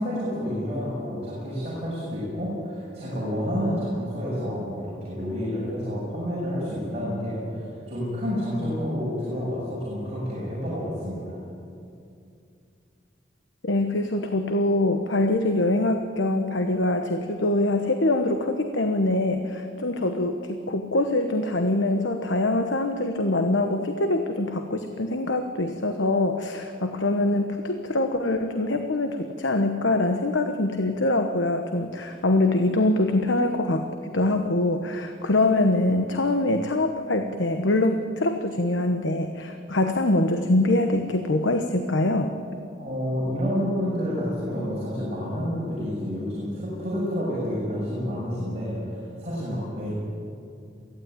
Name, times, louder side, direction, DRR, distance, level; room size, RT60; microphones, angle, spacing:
voice 1, 0.0-11.4 42.8-49.9, equal, 35° right, -7 dB, 6.6 m, -29 dB
voice 2, 13.6-42.4, left 2 dB, 85° left, 6 dB, 1.1 m, -24 dB
23.0 x 15.5 x 9.2 m, 2.5 s
head